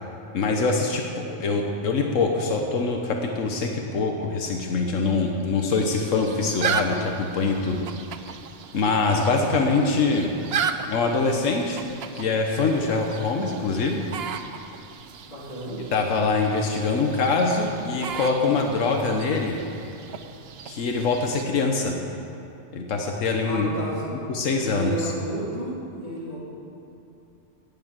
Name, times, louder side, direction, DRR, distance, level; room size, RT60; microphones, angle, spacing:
voice 1, 0.3-1.0 1.3-7.9 8.7-10.3 10.9-11.8 12.2-14.0 15.9-19.6 20.6-22.0 22.7-23.7 24.1-25.1, left 4 dB, 85° left, 2 dB, 1.4 m, -24 dB
sound 1, 5.7-21.4, right 7 dB, 60° right, 0.9 m, -35 dB
voice 2, 15.2-15.8 23.5-24.0 24.6-26.4, right 2 dB, 30° left, -6 dB, 3.5 m, -31 dB
17.0 x 7.4 x 7.4 m, 2.8 s
omnidirectional pair, 1.3 m